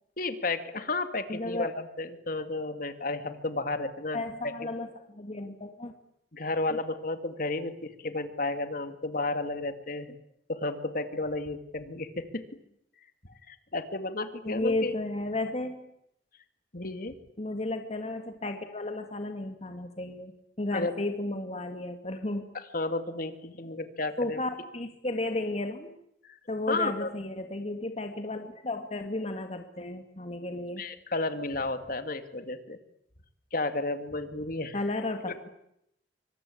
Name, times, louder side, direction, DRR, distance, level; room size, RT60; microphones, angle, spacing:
voice 1, 0.2-4.5 6.3-10.1 10.5-12.4 13.5-14.9 16.7-17.1 20.7-20.9 22.5-24.4 26.2-26.4 26.7-27.1 30.8-32.8 33.5-34.8, left 2 dB, 55° left, 9 dB, 2.4 m, -32 dB
voice 2, 1.3-1.7 4.1-5.9 6.7-6.8 14.4-15.8 17.4-20.3 20.6-22.4 24.2-25.9 26.5-30.8 34.7-35.5, left 2 dB, 35° left, 6 dB, 2.1 m, -33 dB
27.0 x 25.0 x 8.7 m, 0.77 s
head